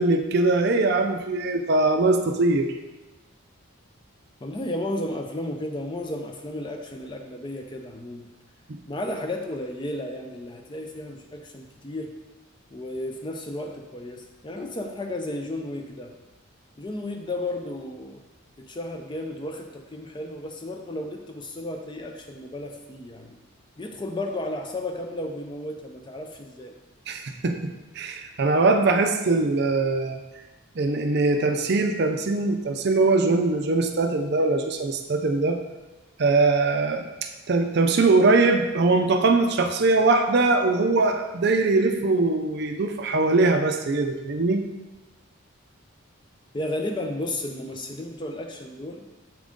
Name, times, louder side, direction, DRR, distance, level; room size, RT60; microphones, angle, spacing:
voice 1, 0.0-2.7 27.1-30.2 30.8-35.6 36.2-37.1 37.5-44.6, right 3 dB, 50° right, 5 dB, 0.5 m, -22 dB
voice 2, 4.4-8.3 8.9-12.1 12.7-16.1 16.8-18.2 18.6-23.4 23.8-26.8 46.5-49.1, left 1 dB, 20° left, 4 dB, 0.4 m, -33 dB
7.3 x 3.8 x 3.6 m, 1.1 s
head